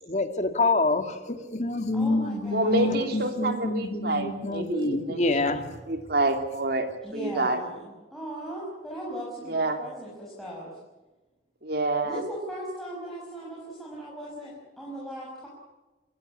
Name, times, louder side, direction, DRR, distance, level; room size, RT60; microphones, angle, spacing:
voice 1, 0.0-5.6, left 2 dB, 40° left, 2.2 m, -27 dB
voice 2, 1.9-3.1 7.0-10.8 12.0-15.5, right 1 dB, ahead, 5.9 m, -38 dB
voice 3, 2.5-5.3 5.9-7.6 9.5-9.8 11.6-12.2, right 2 dB, 60° right, 3.1 m, -27 dB
26.5 x 15.5 x 8.5 m
head